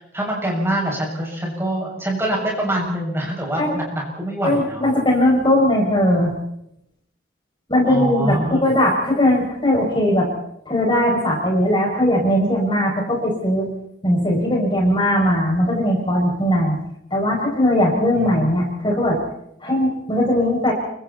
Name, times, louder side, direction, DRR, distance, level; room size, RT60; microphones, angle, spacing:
voice 1, 0.0-4.9 7.9-8.7 18.1-18.7, right 1 dB, 15° right, -2 dB, 7.0 m, -25 dB
voice 2, 4.4-6.3 7.7-10.3 10.6-13.7 14.0-16.8 17.1-19.2 19.6-20.7, left 1 dB, 25° left, -2 dB, 6.7 m, -19 dB
29.5 x 25.5 x 4.3 m, 0.78 s
head